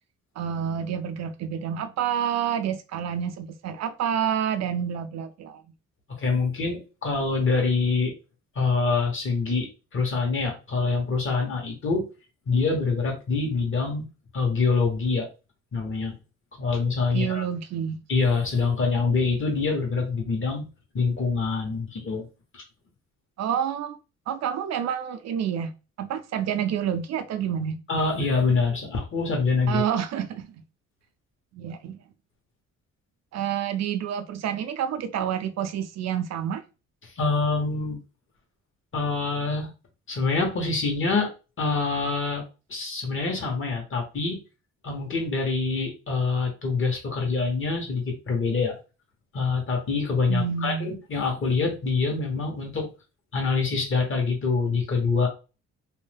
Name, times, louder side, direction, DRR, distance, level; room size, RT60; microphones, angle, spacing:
voice 1, 0.4-5.6 17.1-18.0 23.4-24.0 24.3-25.7 26.0-27.8 29.7-30.5 31.5-32.0 33.3-36.6 50.3-50.9, right 9 dB, 60° right, 0.4 m, -28 dB
voice 2, 6.2-8.1 8.5-12.0 12.5-14.1 14.3-15.3 15.7-16.1 16.6-17.4 18.1-20.7 20.9-22.3 22.5-22.6 27.9-29.8 37.0-38.0 38.9-39.7 40.1-41.3 41.6-42.4 42.7-44.4 44.8-48.7 49.3-52.9 53.3-55.3, left 4 dB, 40° left, 1.2 m, -25 dB
2.6 x 2.1 x 3.3 m
cardioid pair, 90°, 30 cm